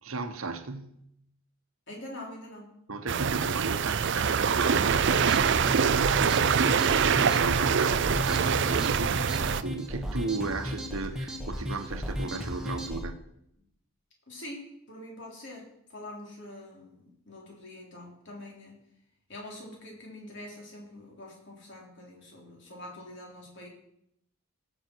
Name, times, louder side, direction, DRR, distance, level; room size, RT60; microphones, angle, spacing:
voice 1, 0.0-1.0 2.9-13.2, right 3 dB, 75° right, 1.2 m, -35 dB
voice 2, 1.9-2.7 14.3-18.8 19.3-23.7, left 1 dB, 55° left, 3.6 m, -45 dB
sound 1, 3.1-9.6, right 6 dB, 55° right, 0.5 m, -24 dB
sound 2, 4.9-13.0, equal, 5° right, 1.2 m, -35 dB
18.0 x 7.3 x 4.6 m
head